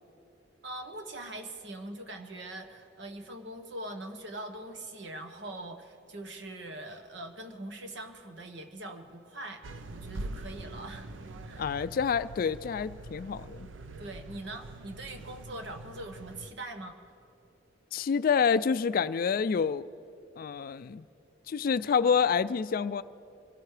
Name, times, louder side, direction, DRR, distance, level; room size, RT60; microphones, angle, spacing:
voice 1, 0.6-9.6 9.9-11.1 11.4-11.7 14.0-17.0, right 1 dB, 65° right, 5 dB, 1.2 m, -42 dB
sound 1, 9.6-16.5, right 2 dB, 80° right, 0.6 m, -44 dB
voice 2, 11.6-13.7 17.9-19.9 20.4-21.0 21.5-23.0, left 6 dB, 50° left, 14 dB, 0.3 m, -27 dB
25.0 x 17.0 x 3.3 m, 2.7 s
head